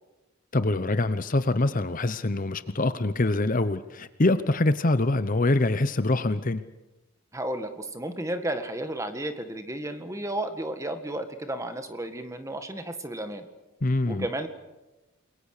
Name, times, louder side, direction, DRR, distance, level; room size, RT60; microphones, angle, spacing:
voice 1, 0.5-6.6 13.8-14.3, left 2 dB, 40° left, 13 dB, 0.8 m, -24 dB
voice 2, 7.3-13.5 14.1-14.5, right 1 dB, 15° right, 8 dB, 1.7 m, -33 dB
28.5 x 22.5 x 6.7 m, 1.0 s
head